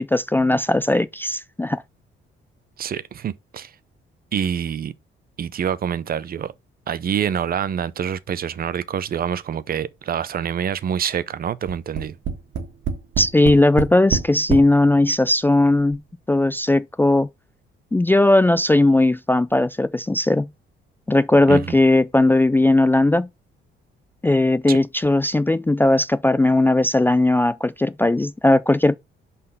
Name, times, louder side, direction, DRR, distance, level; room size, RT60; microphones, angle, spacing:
voice 1, 0.0-1.8 13.2-16.0 16.3-17.3 17.9-20.5 21.1-23.3 24.2-29.0, left 2 dB, 10° left, 0.3 m, -18 dB
voice 2, 2.8-3.7 4.3-4.9 5.4-6.5 6.9-12.2 21.5-21.7 24.7-24.8, right 8 dB, 50° right, 0.6 m, -26 dB
Tap, 11.7-14.7 15.5-15.6 15.9-16.0, right 6 dB, 70° right, 1.6 m, -26 dB
5.4 x 4.1 x 5.4 m
cardioid pair, 90°, 20 cm